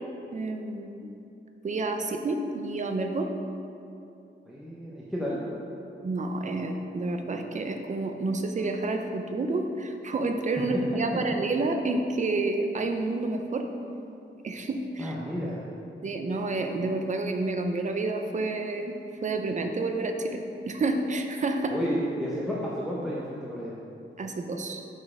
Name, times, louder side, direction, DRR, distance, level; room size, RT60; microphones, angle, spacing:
voice 1, 0.3-1.1 1.6-3.3 6.0-13.7 14.4-15.1 16.0-21.8 24.2-24.8, right 2 dB, 40° right, 5 dB, 0.5 m, -29 dB
voice 2, 4.5-5.4 10.6-10.7 15.0-15.7 21.7-23.7, equal, ahead, -7 dB, 0.7 m, -32 dB
6.4 x 5.3 x 4.8 m, 2.7 s
wide cardioid pair, 175°, 20 cm